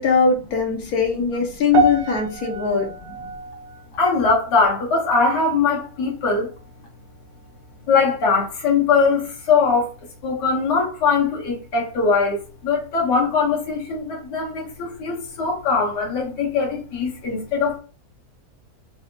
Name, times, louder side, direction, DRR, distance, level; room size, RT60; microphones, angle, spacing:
voice 1, 0.0-2.9, left 5 dB, 70° left, 1.3 m, -20 dB
sound 1, 1.7-6.1 6.4-6.8 7.4-7.5, right 4 dB, 75° right, 1.2 m, -28 dB
voice 2, 4.0-6.5 7.9-9.9 10.2-17.8, left 4 dB, 90° left, 1.7 m, -21 dB
4.1 x 2.7 x 2.5 m
omnidirectional pair, 1.7 m